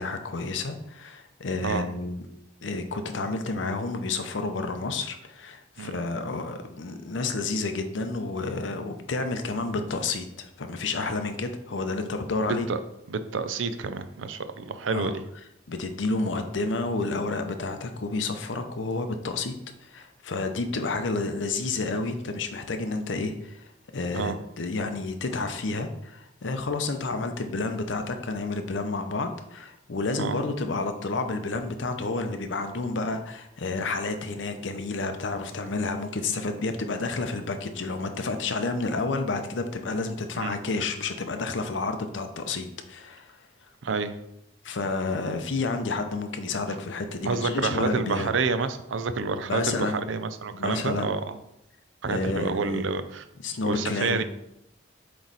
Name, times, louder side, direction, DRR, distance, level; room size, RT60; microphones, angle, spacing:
voice 1, 0.0-2.2 2.6-12.7 14.9-15.1 15.7-19.5 19.8-43.3 44.6-48.3 49.5-50.0 50.5-51.1 52.1-52.9 53.4-54.2, left 3 dB, 80° left, 7 dB, 0.7 m, -30 dB
voice 2, 12.4-12.8 13.1-15.2 24.1-24.4 30.2-30.4 40.4-40.6 43.8-44.2 47.2-51.4 52.0-53.2 53.6-54.2, right 4 dB, 90° right, 10 dB, 0.5 m, -29 dB
7.7 x 3.1 x 4.0 m, 0.83 s
head